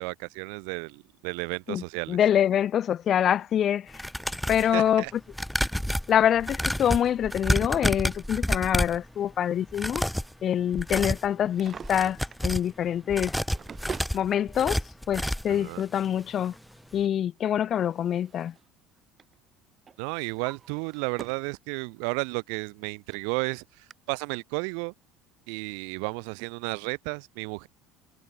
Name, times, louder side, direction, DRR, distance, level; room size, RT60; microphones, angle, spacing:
voice 1, 0.0-2.2 4.6-5.1 15.5-15.8 20.0-24.9 25.5-27.7, right 40 dB or more, 75° right, 3.0 m, -33 dB
voice 2, 2.1-3.9 4.5-5.0 6.1-10.0 10.4-12.2 12.4-13.3 14.1-14.8 15.1-16.5 16.9-18.5, left 10 dB, 45° left, 0.7 m, -25 dB
sound 1, 3.9-4.7 5.3-9.1 9.7-10.3 10.7-11.3 11.8-12.7 13.1-15.6 15.9-16.1 16.4-16.5, equal, ahead, 0.6 m, -29 dB
Drawer open or close, 11.4-12.5 13.2-14.2 15.3-15.4 17.1-18.7 19.0-19.3 19.9-21.5 22.0-22.1 22.8-22.9 23.1-23.2 23.9-24.0, right 6 dB, 30° right, 5.6 m, -44 dB
supercardioid pair, 110°, 0 cm